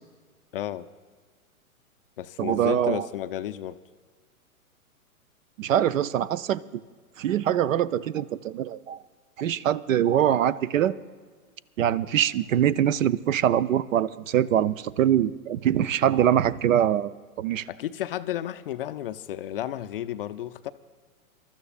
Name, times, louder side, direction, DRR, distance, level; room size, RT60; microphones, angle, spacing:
voice 1, 0.5-0.9 2.2-3.8 17.7-20.7, left 12 dB, 40° left, 12 dB, 0.4 m, -32 dB
voice 2, 2.4-3.1 5.6-6.6 7.2-9.0 9.4-10.9 11.8-17.7, right 10 dB, 65° right, 19 dB, 0.6 m, -23 dB
26.5 x 13.0 x 2.4 m, 1.5 s
hypercardioid pair, 125°, 44 cm